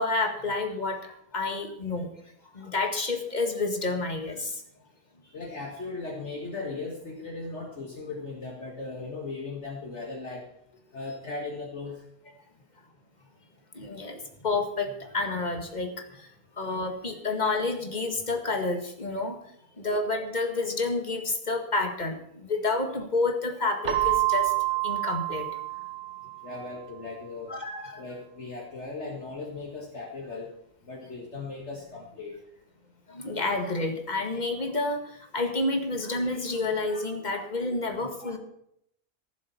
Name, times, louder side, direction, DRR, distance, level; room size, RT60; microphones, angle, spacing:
voice 1, 0.0-2.1 2.5-4.6 13.7-16.3 16.6-19.4 19.8-25.5 27.5-28.0 33.1-38.4, left 3 dB, 30° left, 4 dB, 1.9 m, -29 dB
voice 2, 5.2-10.5 10.9-12.0 19.8-20.1 25.7-25.9 26.4-27.5 28.0-30.5 30.9-32.4, left 3 dB, 50° left, -2 dB, 2.1 m, -38 dB
Keyboard (musical), 23.8-26.6, right 16 dB, 55° right, 1.2 m, -27 dB
15.0 x 7.3 x 7.0 m, 0.74 s
omnidirectional pair, 1.6 m